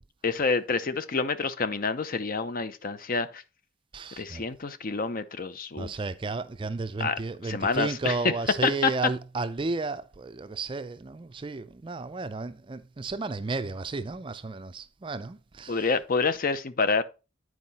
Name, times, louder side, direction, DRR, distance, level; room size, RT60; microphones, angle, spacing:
voice 1, 0.2-3.4 4.2-5.9 7.0-8.2 8.6-8.9 15.7-17.0, left 4 dB, 45° left, 0.6 m, -28 dB
voice 2, 3.9-4.4 5.8-15.8, right 3 dB, 25° right, 0.4 m, -33 dB
9.5 x 4.7 x 4.1 m
head